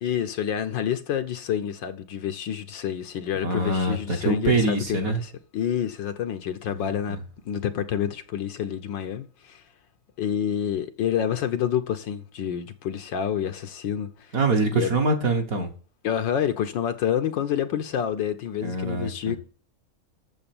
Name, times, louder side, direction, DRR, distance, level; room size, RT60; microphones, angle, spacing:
voice 1, 0.0-7.2 7.4-9.6 10.2-14.3 14.7-14.9 16.0-19.4, left 9 dB, 65° left, 1.5 m, -28 dB
voice 2, 3.3-5.2 6.7-7.2 14.3-15.7 18.6-19.1, right 2 dB, 45° right, 1.7 m, -24 dB
9.0 x 7.2 x 7.1 m
omnidirectional pair, 2.3 m